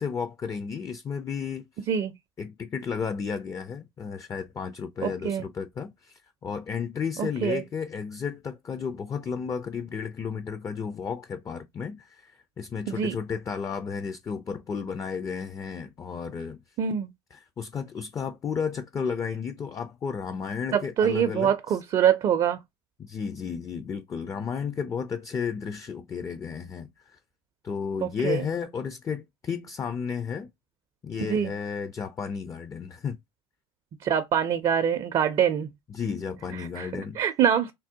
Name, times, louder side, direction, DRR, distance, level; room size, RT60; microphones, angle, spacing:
voice 1, 0.0-1.9 2.4-16.6 17.3-21.8 23.0-27.2 27.6-30.5 31.0-33.2 35.9-37.2, left 6 dB, 25° left, 0.4 m, -33 dB
voice 2, 7.2-7.6 12.9-13.1 16.8-17.1 20.7-22.6 28.0-28.5 31.2-31.5 34.0-35.7 36.8-36.9 37.2-37.7, right 8 dB, 40° right, 0.4 m, -24 dB
3.4 x 2.1 x 2.7 m
hypercardioid pair, 70°, 13 cm